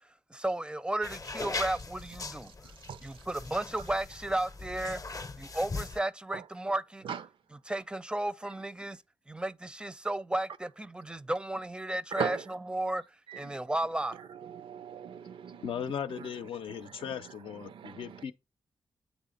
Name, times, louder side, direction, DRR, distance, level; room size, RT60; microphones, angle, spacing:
voice 1, 0.0-2.5 3.0-5.0 5.4-7.1 7.6-13.0 13.3-14.2, right 1 dB, 10° right, 0.4 m, -34 dB
sound 1, 1.0-6.0, left 3 dB, 40° left, 0.7 m, -40 dB
voice 2, 13.3-13.6 14.3-15.7 16.1-16.3 16.7-18.2, right 7 dB, 75° right, 0.5 m, -40 dB
voice 3, 15.6-18.3, left 8 dB, 75° left, 0.6 m, -37 dB
8.2 x 3.5 x 3.8 m
cardioid pair, 65°, 9 cm